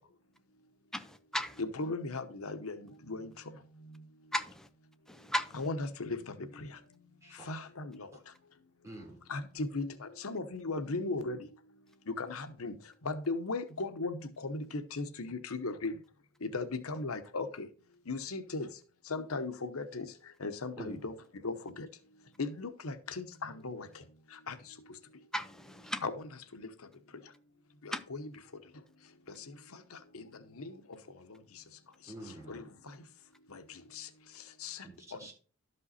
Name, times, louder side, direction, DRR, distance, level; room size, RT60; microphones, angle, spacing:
voice 1, 0.9-1.6 4.3-4.7 5.1-5.5 25.3-26.0 27.9-28.0, equal, ahead, 0.7 m, -35 dB
voice 2, 1.6-2.8 3.1-3.3 5.5-6.2 6.6-6.7 7.5-7.9 9.3-11.4 12.2-12.7 13.1-14.2 14.4-15.9 16.4-17.7 18.1-18.7 19.1-20.0 20.4-21.1 21.4-21.9 22.4-23.9 24.5-24.6 26.0-26.2 27.9-28.3 30.1-30.2 30.6-30.7 32.5-32.6 34.0-34.1 34.6-34.8, left 3 dB, 90° left, 0.9 m, -36 dB
voice 3, 8.8-9.2 20.8-21.0 32.1-32.7 34.8-35.3, right 1 dB, 15° right, 3.7 m, -47 dB
12.0 x 5.4 x 4.2 m
head